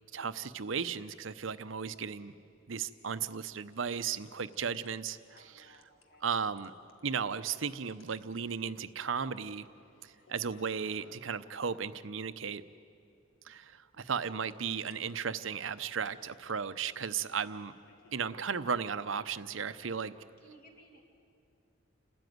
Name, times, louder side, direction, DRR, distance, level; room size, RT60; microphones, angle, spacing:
voice 1, 0.1-2.3 2.7-5.7 6.2-6.7 7.0-9.7 10.0-12.6 13.4-17.7 18.1-20.1, right 6 dB, 70° right, 13 dB, 0.7 m, -35 dB
sound 1, 2.8-4.0 4.2-4.9 5.2-5.4 5.7-7.2 7.5-8.5 8.8-8.9 9.1-9.2 9.3-11.3 14.0-15.1 16.0-16.5 16.8-18.3, left 4 dB, 85° left, 1.8 m, -63 dB
voice 2, 5.3-6.2 20.4-21.0, right 1 dB, 50° left, 1 dB, 3.1 m, -59 dB
29.0 x 13.0 x 9.4 m, 2.5 s
head